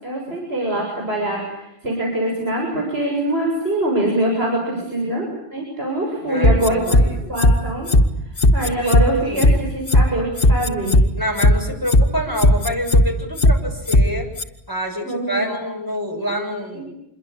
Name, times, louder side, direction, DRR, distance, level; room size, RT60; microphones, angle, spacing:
voice 1, 0.0-7.0 7.3-7.9 8.5-11.0 15.0-15.6 16.7-17.0, right 1 dB, 75° right, -1 dB, 7.5 m, -24 dB
voice 2, 6.2-7.2 8.8-9.6 11.1-14.3 14.7-17.0, equal, 20° right, 0 dB, 7.1 m, -27 dB
sound 1, 6.4-7.0 7.4-7.5 7.9-8.0 8.4-9.0 9.4-9.5 9.9-10.0 10.4-11.0 11.4-11.5 11.9-12.0 12.4-13.0 13.4-13.5 13.9-14.0 14.4-14.5, left 1 dB, 60° left, 2.1 m, -13 dB
28.5 x 23.0 x 8.8 m, 0.81 s
omnidirectional pair, 1.1 m